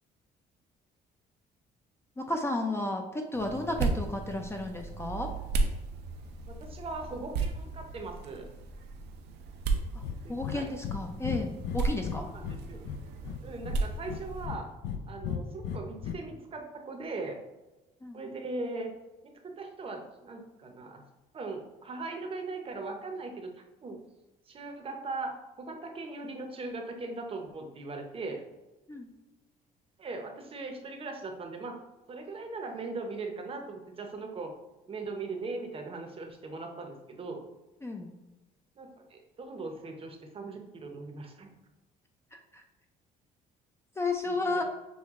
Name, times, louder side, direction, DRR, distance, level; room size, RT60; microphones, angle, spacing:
voice 1, 2.2-5.3 9.9-10.0 10.3-12.2 18.0-18.2 28.9-29.1 37.8-38.1 42.3-42.6 44.0-44.6, left 2 dB, 15° left, 3 dB, 0.4 m, -33 dB
sound 1, 3.3-14.5, right 3 dB, 85° right, 0.6 m, -35 dB
voice 2, 6.5-8.5 10.2-10.7 12.2-12.8 13.4-14.7 15.1-17.4 18.1-18.9 19.2-21.0 21.3-23.5 23.8-24.0 24.5-28.4 30.0-31.8 32.1-34.5 34.9-37.4 38.8-41.5 44.2-44.6, right 3 dB, 35° right, 3 dB, 0.7 m, -39 dB
Breathing, 10.0-10.2 10.4-10.6 10.8-11.0 11.2-12.6 12.8-13.8 14.1-15.0 15.2-16.1, left 8 dB, 85° left, 0.5 m, -35 dB
6.3 x 2.2 x 3.6 m, 1.1 s
cardioid pair, 110°, 17 cm